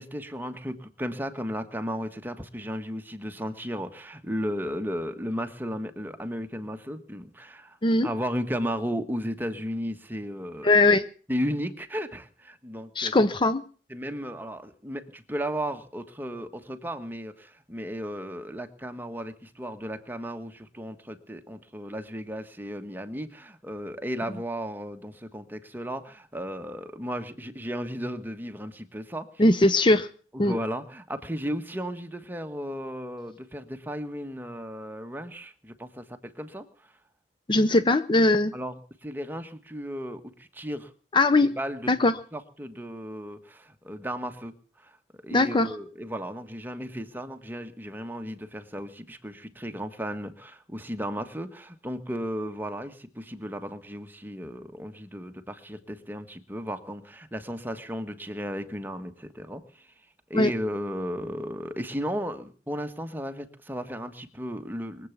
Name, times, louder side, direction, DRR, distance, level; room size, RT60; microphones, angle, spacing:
voice 1, 0.0-7.8 8.0-10.7 11.3-13.1 13.9-29.4 30.3-36.7 38.5-38.7 39.0-40.9 41.6-41.9 42.3-44.5 44.8-44.9 45.2-59.9 60.3-65.1, equal, 10° right, 7 dB, 1.4 m, -34 dB
voice 2, 10.6-11.0 13.0-13.6 29.4-30.1 30.4-30.6 37.5-38.5 41.1-41.5 41.9-42.1 45.3-45.7 60.3-60.5, left 2 dB, 30° left, 12 dB, 0.7 m, -20 dB
22.5 x 8.2 x 7.3 m, 0.43 s
head